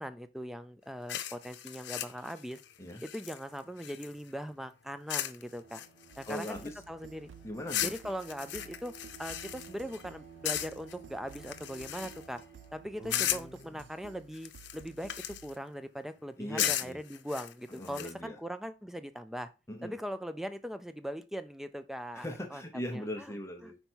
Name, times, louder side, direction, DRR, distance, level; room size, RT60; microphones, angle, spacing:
voice 1, 0.0-2.6 3.0-5.8 6.2-6.6 6.9-7.3 7.8-12.4 12.7-15.1 15.4-19.5 19.8-22.6 22.9-23.0 23.6-23.7, equal, ahead, 11 dB, 0.4 m, -40 dB
sound 1, 1.1-4.3 5.1-5.4 5.7-6.8 7.7-10.0 10.4-10.9 11.3-12.4 13.1-13.6 14.3-15.6 16.6-18.1, left 12 dB, 85° left, 0.6 m, -36 dB
Bowed string instrument, 5.4-13.9, right 6 dB, 35° right, 2.3 m, -55 dB
sound 2, 6.1-15.6, right 8 dB, 85° right, 0.3 m, -55 dB
voice 2, 6.2-6.8 7.4-7.9 13.0-13.9 16.4-17.0 17.7-18.4 19.7-20.0 22.1-23.8, left 1 dB, 15° left, 4 dB, 0.8 m, -40 dB
5.4 x 4.5 x 4.4 m, 0.31 s
head